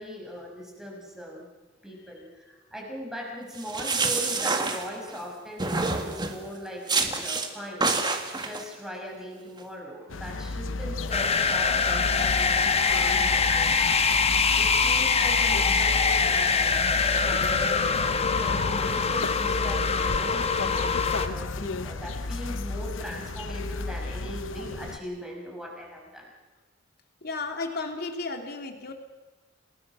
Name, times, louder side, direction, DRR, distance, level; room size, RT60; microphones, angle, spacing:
voice 1, 0.0-1.5 1.8-7.9 8.3-13.9 14.5-21.0 21.2-26.3, equal, 5° right, -1 dB, 6.1 m, -39 dB
sound 1, 3.5-5.2 5.6-6.4 6.9-7.5 7.8-8.6, right 3 dB, 25° right, 1.9 m, -27 dB
sound 2, 10.1-25.0, left 3 dB, 75° left, 0.8 m, -33 dB
sound 3, 11.1-21.3, left 5 dB, 30° left, 1.2 m, -24 dB
voice 2, 27.2-28.9, left 3 dB, 55° left, 4 dB, 2.8 m, -33 dB
28.5 x 20.0 x 6.2 m, 1.2 s
head